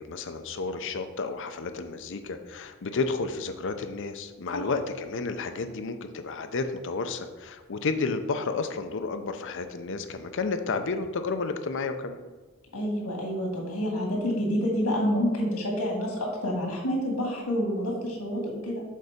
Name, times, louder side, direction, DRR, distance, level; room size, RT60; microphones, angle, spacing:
voice 1, 0.0-12.2, left 4 dB, 60° left, 8 dB, 0.6 m, -31 dB
voice 2, 12.7-18.8, equal, 90° left, -1 dB, 2.0 m, -28 dB
6.5 x 4.0 x 5.0 m, 1.3 s
head